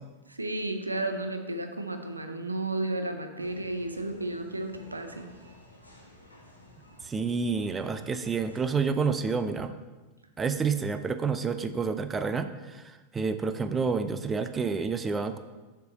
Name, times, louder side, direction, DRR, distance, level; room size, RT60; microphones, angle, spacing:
voice 1, 0.3-5.3, right 2 dB, 85° right, 6 dB, 0.7 m, -33 dB
sound 1, 3.4-8.6, left 1 dB, 85° left, 1.2 m, -54 dB
voice 2, 7.0-9.7 10.4-15.4, right 5 dB, 15° right, 10 dB, 0.4 m, -29 dB
6.7 x 6.6 x 4.0 m, 1.2 s
figure-of-eight pair, 90°, 0 cm